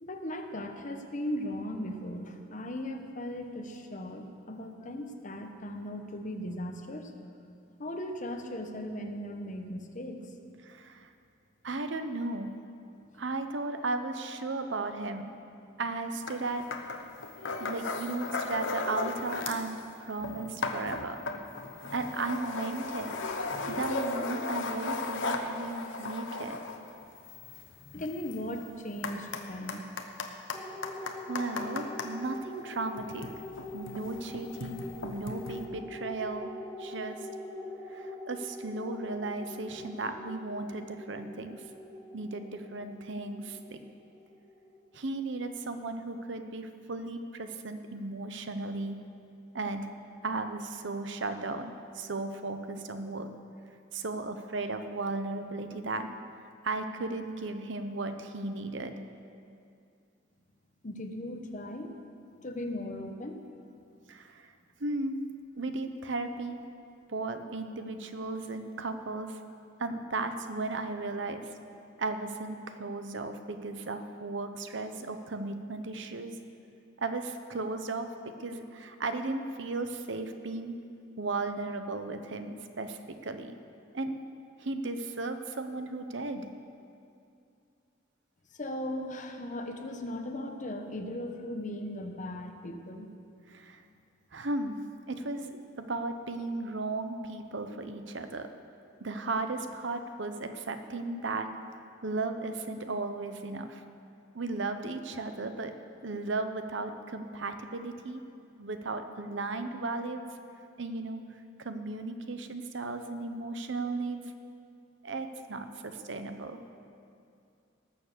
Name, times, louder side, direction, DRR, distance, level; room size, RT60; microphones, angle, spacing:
voice 1, 0.0-7.1 7.8-10.3 13.1-13.2 20.2-20.4 21.0-21.1 21.6-22.0 23.5-23.7 27.8-29.8 60.8-61.9 62.3-63.5 88.6-93.1, left 1 dB, 40° left, 5 dB, 1.0 m, -38 dB
voice 2, 10.6-11.1 11.6-12.5 13.2-15.3 15.8-16.6 17.6-21.2 21.9-23.2 23.7-26.6 29.7-29.8 31.1-33.3 33.7-36.5 36.8-37.3 37.9-41.6 42.1-43.8 44.9-49.0 49.5-49.9 50.2-53.3 53.9-56.1 56.6-59.0 64.1-64.5 64.8-65.2 65.6-66.6 67.1-69.4 69.8-71.4 72.0-76.4 77.0-78.1 78.4-80.8 81.2-83.6 83.9-84.2 84.6-86.5 93.5-93.8 94.3-94.8 95.1-98.5 99.0-101.5 102.0-103.8 104.3-105.7 106.0-108.2 108.6-110.3 110.8-111.2 111.6-114.3 115.0-116.6, right 3 dB, 70° right, 8 dB, 0.9 m, -35 dB
sound 1, 16.3-16.4 16.7-19.7 20.0-32.1 32.9-35.6, left 3 dB, 75° left, 1.0 m, -37 dB
sound 2, 30.5-45.3, left 1 dB, 5° left, 1.9 m, -44 dB
18.0 x 7.1 x 6.8 m, 2.5 s
head